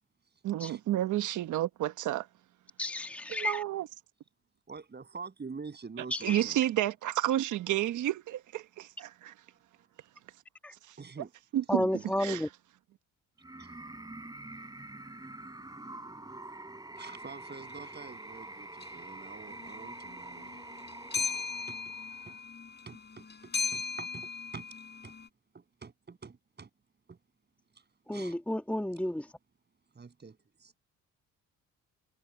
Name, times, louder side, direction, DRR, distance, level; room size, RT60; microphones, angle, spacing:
voice 1, 0.4-2.3 3.3-3.9 6.2-9.3 10.9-11.0 11.5-11.9 12.2-12.4, right 13 dB, 80° right, 1.2 m, -30 dB
voice 2, 2.8-3.6 6.1-6.4 10.6-10.7 11.7-12.5 28.1-29.3, left 1 dB, 5° left, 1.5 m, -32 dB
voice 3, 4.7-6.6 11.0-11.3 12.0-12.1 13.6-13.7 16.3-16.4 16.9-20.7 21.2-21.3 21.7-21.8 22.3-22.4 22.9-24.6 25.0-25.1 25.5-26.7 27.1-27.2 28.1-28.4 29.9-30.7, right 5 dB, 35° right, 8.0 m, -46 dB
sound 1, 13.4-22.4, right 2 dB, 15° right, 3.4 m, -46 dB
sound 2, 17.5-17.7 18.8-19.2 19.5-25.3, left 4 dB, 35° left, 6.0 m, -38 dB
cardioid pair, 90°, 30 cm